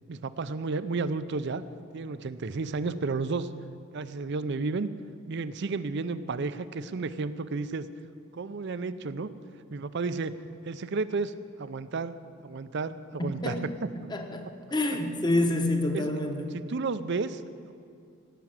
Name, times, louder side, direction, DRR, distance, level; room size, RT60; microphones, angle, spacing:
voice 1, 0.1-1.6 1.9-3.5 3.9-4.9 5.3-7.9 8.3-9.3 9.7-10.4 10.6-11.3 11.6-12.2 12.4-13.9 15.9-16.2 16.5-17.4, right 4 dB, 55° right, 14 dB, 0.5 m, -32 dB
voice 2, 13.2-13.8 14.1-16.5, left 1 dB, 20° left, 5 dB, 1.0 m, -28 dB
17.0 x 6.0 x 8.8 m, 2.4 s
head